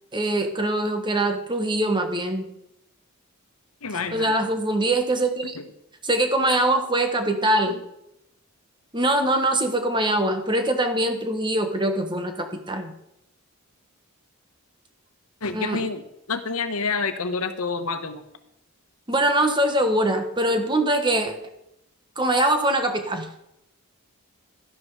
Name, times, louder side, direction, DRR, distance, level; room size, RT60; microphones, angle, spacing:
voice 1, 0.1-2.5 4.1-5.6 6.0-7.8 8.9-12.9 15.5-15.8 19.1-21.4 22.1-23.3, right 1 dB, 20° right, 6 dB, 1.4 m, -23 dB
voice 2, 3.8-4.3 5.5-5.7 7.7-7.8 15.4-16.0 16.3-18.2, left 4 dB, 75° left, 9 dB, 1.2 m, -28 dB
12.5 x 11.0 x 4.9 m, 0.83 s
head